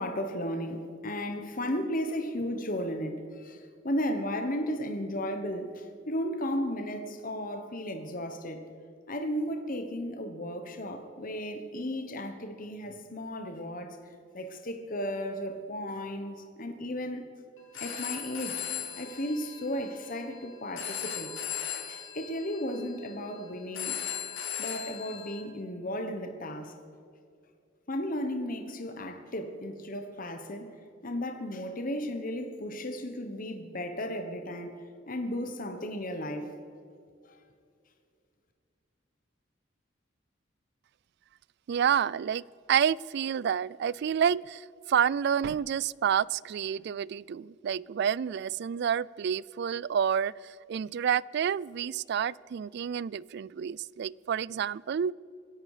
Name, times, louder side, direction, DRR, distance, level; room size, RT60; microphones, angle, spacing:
voice 1, 0.0-8.6 9.1-14.0 14.3-17.3 17.7-21.3 21.9-24.0 24.6-26.7 27.9-30.7 31.0-34.8 35.1-36.5 37.2-37.4, equal, 45° left, 6 dB, 1.3 m, -34 dB
Telephone, 17.6-25.4, left 9 dB, 85° left, 3.8 m, -38 dB
voice 2, 41.7-42.4 42.7-55.1, right 8 dB, 60° right, 24 dB, 0.3 m, -29 dB
26.0 x 11.0 x 5.0 m, 2.3 s
head